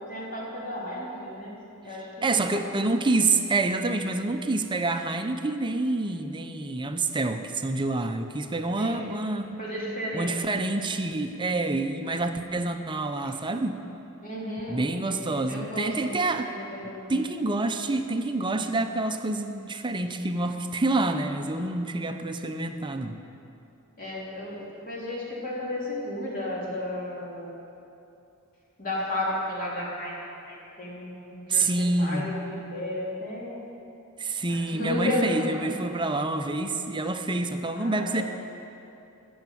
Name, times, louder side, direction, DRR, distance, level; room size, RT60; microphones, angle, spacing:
voice 1, 0.1-1.5 1.8-2.6 8.8-9.1 9.6-10.4 11.8-11.9 14.2-14.8 15.1-17.1 24.0-27.5 28.8-30.1 30.5-33.7 34.5-35.7 37.7-38.2, left 1 dB, 40° left, -5 dB, 3.6 m, -33 dB
voice 2, 1.9-9.6 10.1-13.8 14.7-16.5 16.8-23.2 31.5-32.3 34.2-38.2, right 2 dB, 20° right, 7 dB, 0.6 m, -27 dB
14.5 x 7.2 x 9.2 m, 2.7 s
head